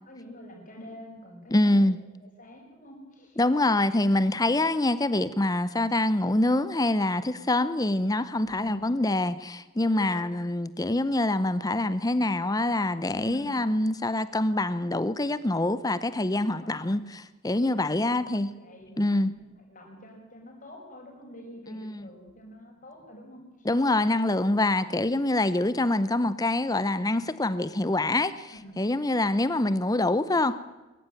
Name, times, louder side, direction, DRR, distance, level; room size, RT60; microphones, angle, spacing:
voice 1, 0.1-1.9 2.4-3.4 4.3-4.4 8.4-8.8 9.9-10.4 13.2-13.7 16.5-17.0 17.5-23.7 24.8-25.0 28.5-28.9, equal, 35° left, 5.6 m, -46 dB
voice 2, 1.5-2.0 3.4-18.5 19.0-19.3 21.7-22.1 23.6-30.6, left 2 dB, 15° left, 0.6 m, -25 dB
23.0 x 15.0 x 9.1 m
head